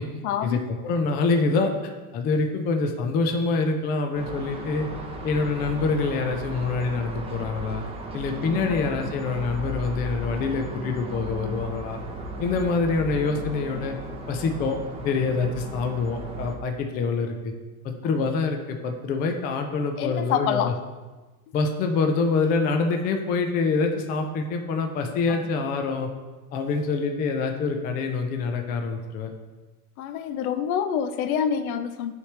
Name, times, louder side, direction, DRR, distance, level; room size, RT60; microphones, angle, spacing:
voice 1, 0.0-0.7 18.0-18.3 20.0-20.8 25.3-25.4 30.0-32.1, left 8 dB, 65° left, 10 dB, 0.6 m, -27 dB
voice 2, 0.8-4.9 5.2-7.8 8.1-12.0 12.4-14.0 14.3-14.8 15.0-17.5 17.8-20.7 21.5-26.1 26.5-29.3, left 4 dB, 20° left, 4 dB, 0.4 m, -25 dB
sound 1, 4.1-16.6, right 1 dB, 15° right, 0.7 m, -36 dB
9.1 x 3.3 x 3.2 m, 1.2 s
hypercardioid pair, 115°, 46 cm